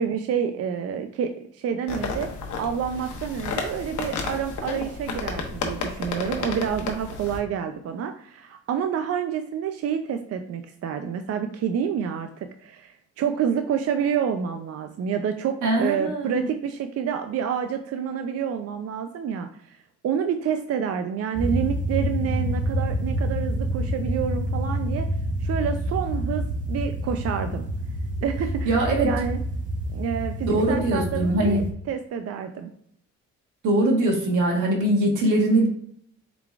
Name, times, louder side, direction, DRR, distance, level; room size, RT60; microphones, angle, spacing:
voice 1, 0.0-2.3 2.5-19.8 20.0-25.1 25.4-27.7 28.2-29.4 29.9-32.7, right 7 dB, 55° right, 7 dB, 0.5 m, -28 dB
sound 1, 1.9-7.4, left 4 dB, 75° left, 0.9 m, -32 dB
voice 2, 15.6-16.5 28.6-29.1 30.5-31.7 33.6-35.7, right 1 dB, 80° right, 0 dB, 1.3 m, -22 dB
sound 2, 21.3-31.7, right 1 dB, 25° right, 0.8 m, -28 dB
4.4 x 3.9 x 2.4 m, 0.67 s
cardioid pair, 90°, 30 cm